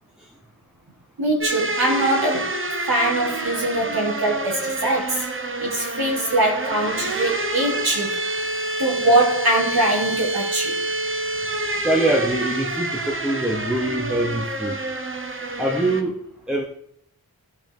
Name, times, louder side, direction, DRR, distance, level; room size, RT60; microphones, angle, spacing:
voice 1, 1.2-2.6 2.9-5.3 5.6-8.1 8.8-10.7, right 1 dB, 75° right, 3.1 m, -22 dB
sound 1, 1.4-16.0, right 2 dB, 35° right, 1.1 m, -28 dB
voice 2, 11.8-14.8 15.6-16.2 16.5-16.6, right 1 dB, ahead, 1.2 m, -23 dB
15.0 x 5.9 x 3.5 m
wide cardioid pair, 70°, 37 cm